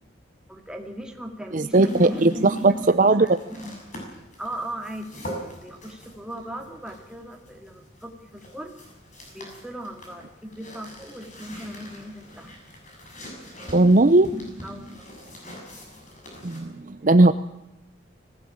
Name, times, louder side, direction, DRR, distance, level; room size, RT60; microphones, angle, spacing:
voice 1, 0.5-3.7 4.4-8.8 9.3-12.5 14.3-15.1 17.0-17.3, right 1 dB, 5° right, 2 dB, 2.5 m, -37 dB
voice 2, 1.5-2.3 2.6-2.7 3.0-3.3 13.7-14.3 16.4-17.3, right 2 dB, 45° right, 11 dB, 0.7 m, -17 dB
sound 1, 1.7-16.6, equal, 40° left, 6.9 m, -44 dB
20.5 x 16.5 x 8.8 m, 0.89 s
head